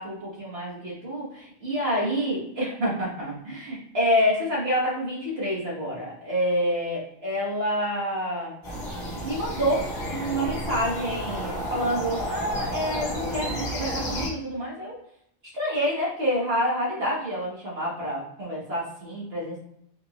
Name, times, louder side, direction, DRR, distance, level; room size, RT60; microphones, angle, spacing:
voice 1, 0.0-8.5 9.2-15.0 15.5-19.6, equal, 60° right, -6 dB, 1.6 m, -28 dB
sound 1, 8.6-14.3, equal, 60° left, 1.4 m, -31 dB
4.5 x 2.6 x 2.9 m, 0.73 s
omnidirectional pair, 1.2 m